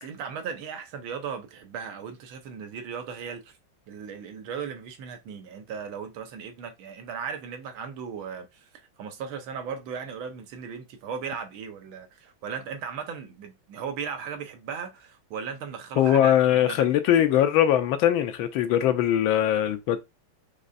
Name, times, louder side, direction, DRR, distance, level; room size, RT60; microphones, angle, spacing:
voice 1, 0.0-3.6 3.9-8.7 9.0-16.9, right 6 dB, 85° right, 1.6 m, -37 dB
voice 2, 16.0-20.0, left 11 dB, 80° left, 1.4 m, -21 dB
5.3 x 3.2 x 2.5 m
omnidirectional pair, 2.2 m